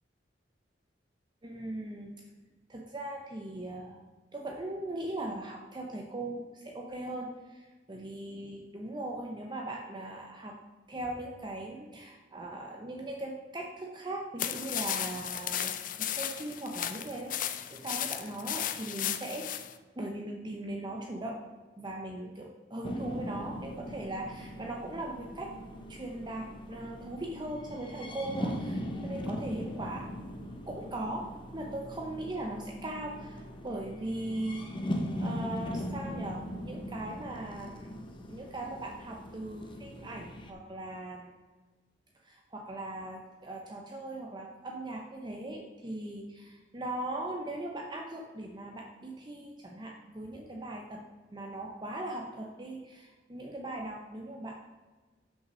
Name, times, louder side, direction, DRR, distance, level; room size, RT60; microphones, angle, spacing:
voice 1, 1.4-2.1 2.7-4.0 4.3-10.6 10.9-19.5 20.0-21.4 21.8-25.5 25.9-30.1 30.7-31.3 31.5-34.8 35.2-37.9 38.3-41.3 42.2-51.0 51.3-54.5, right 1 dB, 25° right, 0 dB, 0.7 m, -39 dB
sound 1, 14.4-19.7, left 10 dB, 50° left, 0.5 m, -35 dB
sound 2, 22.8-40.5, equal, 25° left, 0.8 m, -40 dB
6.4 x 5.4 x 6.2 m, 1.3 s
head